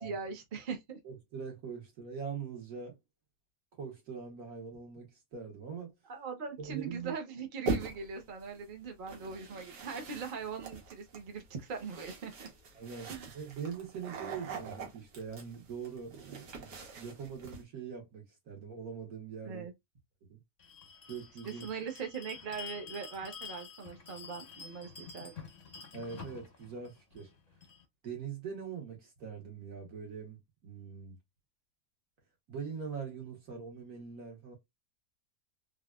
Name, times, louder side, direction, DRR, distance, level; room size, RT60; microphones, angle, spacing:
voice 1, 0.0-1.0 6.1-12.5 13.1-13.4 19.4-19.7 21.6-25.3, right 5 dB, 45° right, 0.7 m, -41 dB
voice 2, 1.0-3.0 3.8-5.9 6.6-7.2 12.7-16.7 16.9-19.7 20.2-20.4 21.1-21.7 25.9-27.3 28.0-31.2 32.5-34.5, right 6 dB, 65° right, 1.8 m, -42 dB
sound 1, 7.6-8.2 9.1-17.6, right 3 dB, 90° right, 1.7 m, -42 dB
Bell, 20.6-27.8, left 6 dB, 35° left, 0.7 m, -49 dB
3.5 x 2.5 x 2.3 m
omnidirectional pair, 1.7 m